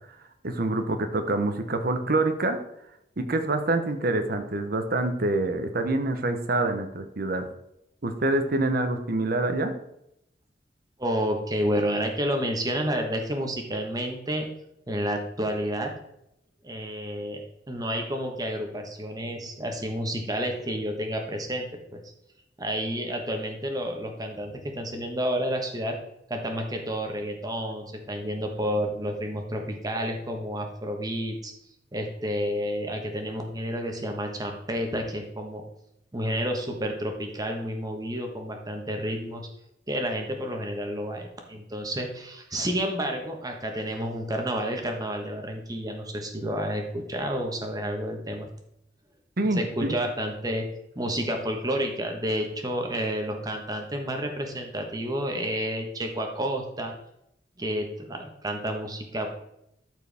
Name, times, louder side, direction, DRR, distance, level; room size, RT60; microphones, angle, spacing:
voice 1, 0.4-2.6 3.2-7.5 8.0-9.7 49.4-50.0, right 2 dB, 55° right, 7 dB, 0.8 m, -26 dB
voice 2, 11.0-14.5 14.9-15.9 16.6-22.0 22.6-26.0 26.3-31.5 31.9-35.6 36.1-39.5 39.9-48.5 49.5-50.7 50.9-56.9 57.6-59.3, equal, 20° right, 3 dB, 1.2 m, -30 dB
12.5 x 4.6 x 3.5 m, 0.79 s
head